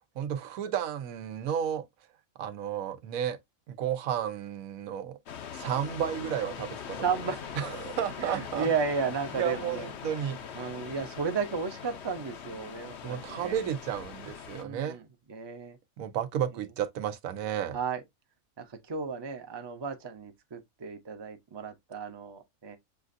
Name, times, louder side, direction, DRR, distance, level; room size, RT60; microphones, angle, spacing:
voice 1, 0.2-1.9 2.4-3.4 3.7-5.2 5.5-7.0 7.5-8.7 9.4-10.4 13.0-15.0 16.0-17.8, right 9 dB, 90° right, 1.1 m, -32 dB
sound 1, 5.3-14.6, left 7 dB, 60° left, 0.9 m, -42 dB
voice 2, 7.0-7.6 8.2-9.9 10.5-13.7 14.5-15.0 15.3-15.8 17.7-18.0 18.6-22.8, right 5 dB, 30° right, 0.5 m, -34 dB
6.8 x 2.5 x 2.5 m
omnidirectional pair, 1.4 m